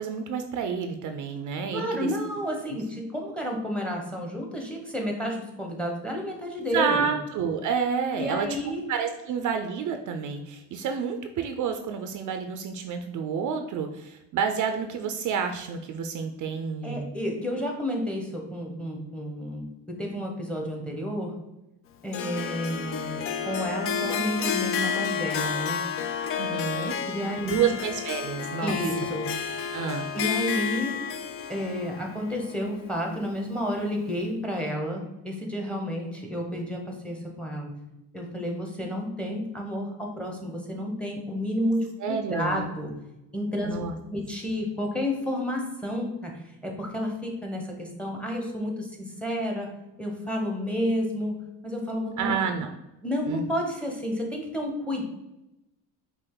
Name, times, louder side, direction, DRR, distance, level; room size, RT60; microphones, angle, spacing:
voice 1, 0.0-2.1 6.6-8.5 8.9-17.1 26.4-27.0 27.4-28.7 29.7-30.1 42.0-42.7 43.6-43.9 52.2-52.7 53.3-53.4, right 6 dB, 55° right, 6 dB, 0.5 m, -29 dB
voice 2, 1.7-7.1 8.2-8.8 16.8-21.3 22.0-25.8 27.1-27.7 28.6-29.3 30.1-31.0 31.5-37.7 38.1-42.9 43.3-43.8 44.1-49.7 50.0-51.4 51.6-52.4 53.0-55.0, equal, 5° left, 1 dB, 0.9 m, -31 dB
Harp, 22.1-33.4, left 7 dB, 40° left, 0.4 m, -31 dB
5.2 x 2.5 x 3.7 m, 0.93 s
cardioid pair, 110°, 38 cm